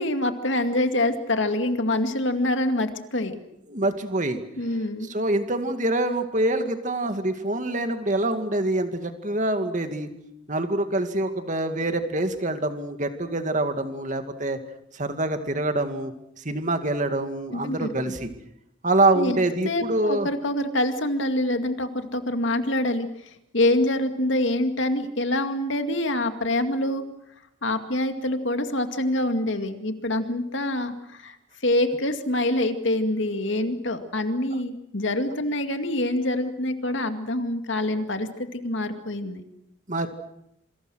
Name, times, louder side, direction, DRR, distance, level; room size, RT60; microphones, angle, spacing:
voice 1, 0.0-3.4 4.6-5.1 17.5-17.9 19.1-19.4 19.6-27.0 27.6-31.4 31.6-39.4, left 1 dB, 65° left, 7 dB, 2.2 m, -25 dB
voice 2, 3.7-4.4 5.0-10.1 10.5-14.6 14.9-18.3 18.8-20.3 39.9-40.1, right 2 dB, 40° right, 7 dB, 2.3 m, -25 dB
27.0 x 25.0 x 6.4 m, 0.78 s
head